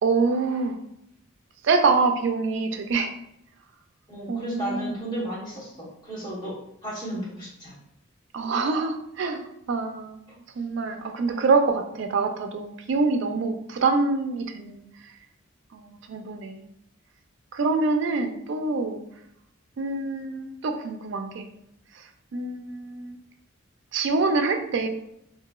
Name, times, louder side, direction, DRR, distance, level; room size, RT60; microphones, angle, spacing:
voice 1, 0.0-0.8 1.6-3.1 4.3-4.9 7.1-7.2 8.3-10.2 10.6-14.8 15.7-16.6 17.5-19.0 19.8-21.5 22.0-22.1 22.3-23.2 23.9-24.9, right 4 dB, 60° right, 6 dB, 0.3 m, -25 dB
voice 2, 4.1-6.5 6.8-7.7, right 1 dB, 20° left, -7 dB, 0.9 m, -34 dB
2.8 x 2.6 x 2.2 m, 0.78 s
head